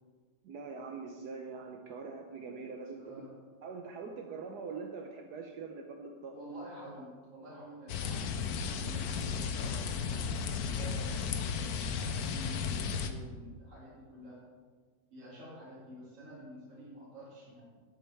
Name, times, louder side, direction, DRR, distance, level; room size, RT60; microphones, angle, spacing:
voice 1, 0.4-3.2 3.6-6.4, right 4 dB, 70° right, 3 dB, 1.2 m, -43 dB
voice 2, 2.9-3.3 6.3-14.4 15.1-17.6, right 1 dB, 40° right, -8 dB, 2.6 m, -49 dB
sound 1, 7.9-13.1, left 6 dB, 65° left, 1.0 m, -34 dB
12.0 x 7.9 x 3.4 m, 1.5 s
omnidirectional pair, 2.0 m